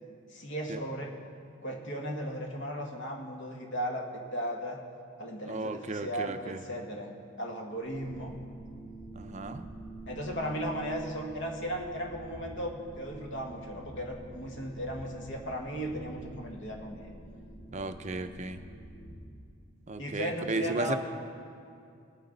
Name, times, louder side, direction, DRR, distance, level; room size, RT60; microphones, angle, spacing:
voice 1, 0.3-1.1 1.6-4.8 5.2-7.1 7.4-8.3 10.1-17.1 20.0-21.0, equal, 60° left, 1 dB, 1.5 m, -36 dB
voice 2, 5.5-6.6 9.1-9.7 17.7-18.6 19.9-20.9, right 3 dB, 35° right, 8 dB, 0.6 m, -34 dB
sound 1, 7.8-19.2, right 1 dB, 75° left, 3.3 m, -47 dB
19.0 x 9.4 x 4.0 m, 2.5 s
head